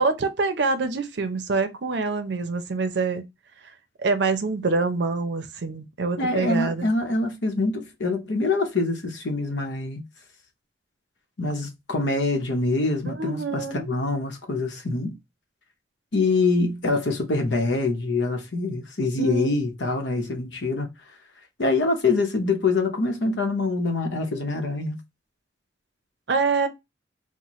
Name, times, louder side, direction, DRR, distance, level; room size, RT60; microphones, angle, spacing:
voice 1, 0.0-3.2 4.0-6.9 13.0-13.9 19.2-19.6 26.3-26.7, right 4 dB, 75° right, 0.6 m, -25 dB
voice 2, 6.2-10.0 11.4-15.2 16.1-20.9 21.6-25.0, left 3 dB, 85° left, 0.9 m, -25 dB
4.3 x 2.1 x 3.0 m
head